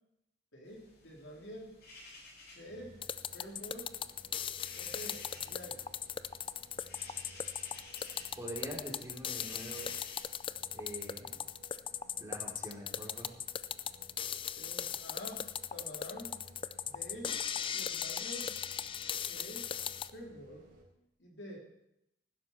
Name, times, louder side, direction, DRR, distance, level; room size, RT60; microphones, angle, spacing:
voice 1, 0.5-1.7 2.5-3.0 3.3-3.9 4.7-5.8 14.6-16.4 16.8-17.4 17.7-18.5 19.3-19.7 20.1-20.6 21.2-21.6, equal, 85° left, -1 dB, 3.5 m, -47 dB
sound 1, 0.6-10.2, left 2 dB, 60° left, 6.7 m, -55 dB
sound 2, 2.7-20.8, equal, 60° right, 4.1 m, -58 dB
sound 3, 3.0-20.1, left 8 dB, 30° left, 0.4 m, -38 dB
voice 2, 8.4-9.9 10.7-11.4 12.1-13.3, right 1 dB, 20° right, -1 dB, 3.0 m, -44 dB
15.5 x 12.0 x 4.4 m, 0.84 s
head